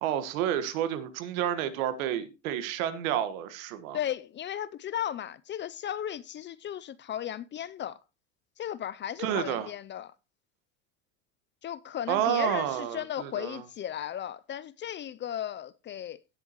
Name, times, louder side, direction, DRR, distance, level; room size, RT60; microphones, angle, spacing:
voice 1, 0.0-4.0 9.2-9.7 12.1-13.6, right 10 dB, 80° right, 1.6 m, -30 dB
voice 2, 3.9-8.0 8.6-10.1 11.6-16.2, left 10 dB, 30° left, 0.4 m, -35 dB
17.0 x 6.9 x 3.0 m
supercardioid pair, 110°, 40 cm